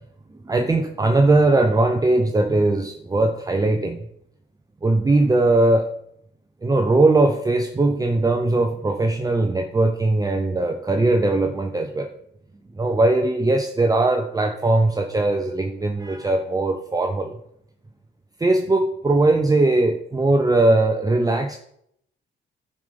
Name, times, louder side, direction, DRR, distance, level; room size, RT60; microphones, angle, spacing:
voice 1, 0.5-4.0 4.8-5.9 6.6-12.1 12.8-17.4 18.4-21.6, right 2 dB, 20° right, 4 dB, 0.8 m, -20 dB
11.0 x 5.3 x 5.4 m, 0.73 s
cardioid pair, 90°, 20 cm